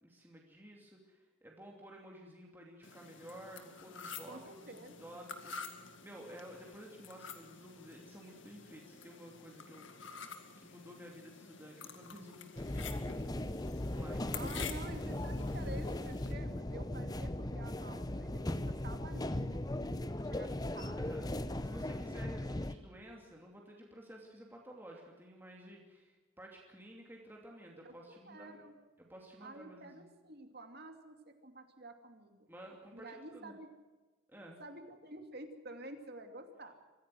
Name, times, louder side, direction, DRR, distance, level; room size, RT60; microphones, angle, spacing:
voice 1, 0.0-4.4 4.7-10.3 10.6-13.2 13.9-14.4 21.0-21.3 21.6-28.6 29.0-30.1 32.5-33.5 34.3-34.6, equal, 10° right, -1 dB, 2.7 m, -53 dB
sound 1, 2.8-16.3, left 6 dB, 65° left, 2.1 m, -49 dB
voice 2, 4.3-5.0 14.3-19.6 20.1-21.2 27.8-28.8 29.4-32.5 32.9-33.7 34.3-36.8, right 2 dB, 50° right, 6 dB, 2.7 m, -50 dB
sound 2, 12.6-22.7, left 1 dB, 20° left, 0.8 m, -38 dB
24.5 x 16.0 x 7.8 m, 1.3 s
head